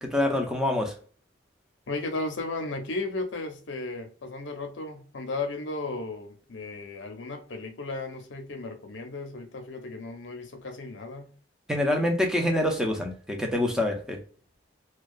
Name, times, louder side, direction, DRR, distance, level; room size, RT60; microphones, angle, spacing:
voice 1, 0.0-0.9 11.7-14.2, left 1 dB, 5° right, 0.4 m, -26 dB
voice 2, 1.9-11.3, left 3 dB, 75° left, 0.6 m, -35 dB
2.3 x 2.2 x 2.4 m
head